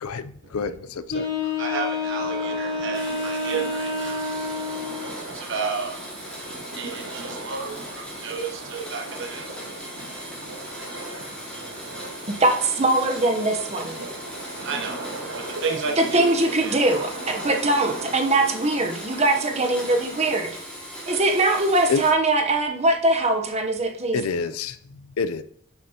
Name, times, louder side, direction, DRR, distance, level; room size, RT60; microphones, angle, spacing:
voice 1, 0.0-1.3 21.9-22.0 24.1-25.4, left 5 dB, 80° left, 13 dB, 0.5 m, -28 dB
Wind instrument woodwind instrument, 1.1-5.2, left 3 dB, 50° left, 3.1 m, -28 dB
voice 2, 1.1-12.4 14.0-16.8, right 5 dB, 55° right, 2 dB, 1.0 m, -34 dB
sound 1, 2.0-20.4, right 2 dB, 75° right, 1.5 m, -39 dB
Domestic sounds home sounds, 2.9-22.1, equal, 5° left, 2.2 m, -39 dB
voice 3, 12.4-14.0 16.0-20.6 21.1-24.2, right 2 dB, 30° right, 3 dB, 0.9 m, -22 dB
9.1 x 6.8 x 2.9 m, 0.66 s
head